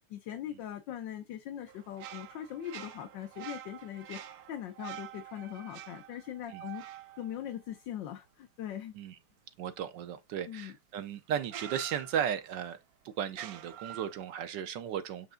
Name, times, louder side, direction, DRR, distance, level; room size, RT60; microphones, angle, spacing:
voice 1, 0.1-4.2 4.5-6.9 7.2-8.9 10.5-10.7, left 11 dB, 65° left, 1.5 m, -41 dB
sound 1, 1.7-8.3 10.6-10.7 11.5-12.7 13.3-14.4, right 11 dB, 85° right, 0.8 m, -47 dB
voice 2, 9.6-12.8 13.0-15.3, right 9 dB, 70° right, 1.1 m, -35 dB
8.1 x 3.3 x 3.7 m
omnidirectional pair, 2.3 m